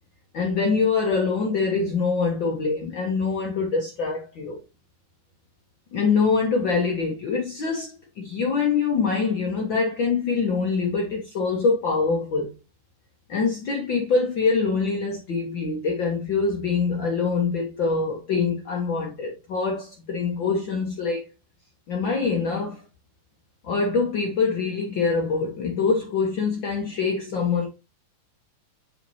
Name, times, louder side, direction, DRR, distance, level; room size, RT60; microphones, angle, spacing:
voice 1, 0.3-4.6 5.9-12.5 13.3-21.3 21.9-22.8 23.6-27.7, left 4 dB, 65° left, 1.1 m, -24 dB
6.2 x 5.8 x 2.7 m
omnidirectional pair, 3.7 m